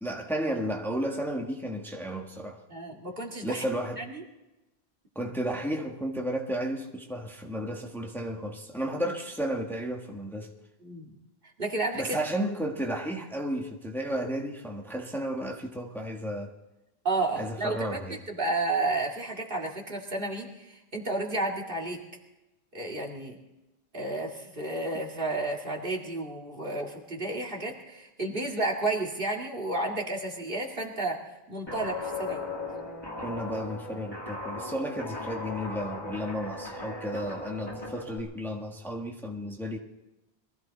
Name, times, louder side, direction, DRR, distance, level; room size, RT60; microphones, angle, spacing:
voice 1, 0.0-2.6 3.4-4.0 5.1-10.5 11.9-16.5 17.4-18.2 33.2-39.8, equal, ahead, 1 dB, 1.5 m, -33 dB
voice 2, 2.7-3.6 4.0-4.2 10.8-11.1 11.6-12.2 17.0-18.0 18.3-22.0 22.7-23.4 23.9-32.4, right 2 dB, 55° right, 0 dB, 2.6 m, -32 dB
Guitar, 31.7-38.2, left 2 dB, 25° left, 1.9 m, -37 dB
23.0 x 15.0 x 4.1 m, 0.98 s
omnidirectional pair, 1.1 m